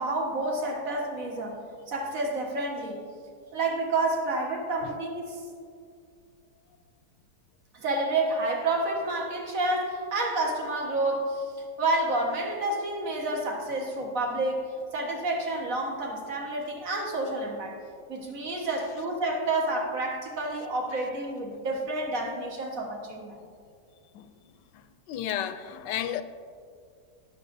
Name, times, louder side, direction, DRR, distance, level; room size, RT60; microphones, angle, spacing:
voice 1, 0.0-1.6 1.9-3.0 3.5-5.4 7.7-11.5 11.8-17.8 18.1-23.4, right 2 dB, 50° right, 0 dB, 1.7 m, -29 dB
voice 2, 25.1-26.2, left 10 dB, 85° left, 11 dB, 1.2 m, -31 dB
20.0 x 7.0 x 2.6 m, 2.2 s
omnidirectional pair, 1.8 m